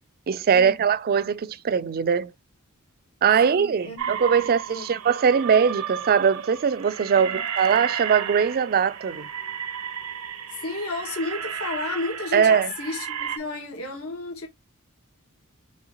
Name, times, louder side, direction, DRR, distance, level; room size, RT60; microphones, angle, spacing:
voice 1, 0.3-2.3 3.2-9.3 12.3-12.7, right 7 dB, 45° right, 0.4 m, -21 dB
voice 2, 3.4-5.0 7.1-7.4 10.5-14.5, left 2 dB, 70° left, 1.6 m, -33 dB
sound 1, 4.0-13.4, right 8 dB, 80° right, 0.7 m, -33 dB
5.4 x 3.2 x 2.8 m
head